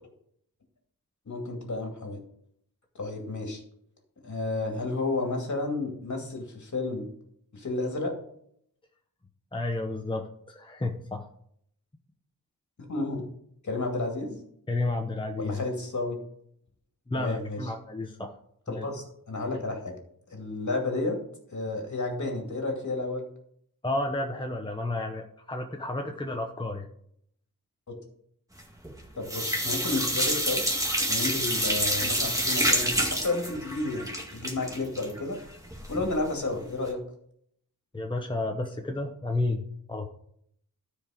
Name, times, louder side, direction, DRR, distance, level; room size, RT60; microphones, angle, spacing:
voice 1, 1.3-2.2 2.9-3.6 4.2-7.1 7.5-8.1 12.8-13.2 13.6-14.4 15.4-16.2 17.1-17.7 18.7-20.0 20.3-21.2 21.5-23.2 27.9-28.0 29.2-30.6 31.1-35.4 35.9-37.0, left 2 dB, 55° left, 1 dB, 2.5 m, -31 dB
voice 2, 9.5-11.2 14.7-15.6 17.1-18.3 18.7-18.9 23.8-26.9 37.9-40.1, left 2 dB, 15° left, 2 dB, 0.9 m, -31 dB
sound 1, 28.6-29.0 29.3-36.1 36.5-36.6 36.9-37.0, equal, 10° right, 1.9 m, -28 dB
13.0 x 4.9 x 5.0 m, 0.68 s
wide cardioid pair, 100°, 35 cm